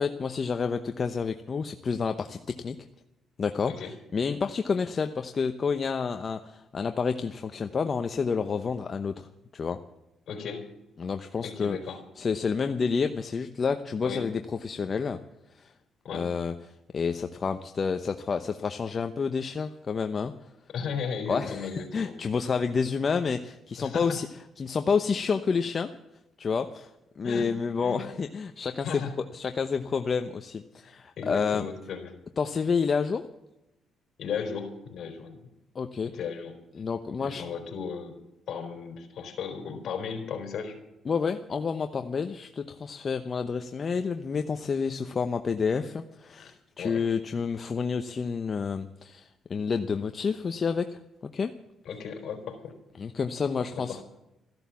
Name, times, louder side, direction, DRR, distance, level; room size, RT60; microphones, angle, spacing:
voice 1, 0.0-2.8 3.4-9.3 9.5-9.8 11.0-11.8 12.2-15.2 15.6-15.7 16.1-16.5 16.9-20.3 21.3-24.3 24.6-25.9 26.4-26.9 27.2-29.0 29.3-31.6 32.4-33.2 35.7-36.1 36.8-37.4 41.1-51.0 51.3-51.5 53.0-54.0, left 5 dB, 40° left, 7 dB, 0.9 m, -29 dB
voice 2, 10.3-10.7 11.4-12.0 14.0-14.3 16.0-16.3 20.7-22.2 23.8-24.2 27.2-27.5 27.8-28.0 28.8-29.1 31.2-32.1 34.2-35.4 36.1-36.6 37.2-38.2 38.5-40.8 46.4-46.5 46.8-47.0 51.9-52.7 53.8-54.0, left 6 dB, 65° left, 5 dB, 3.8 m, -35 dB
14.0 x 12.0 x 7.1 m, 0.91 s
cardioid pair, 90°, 0 cm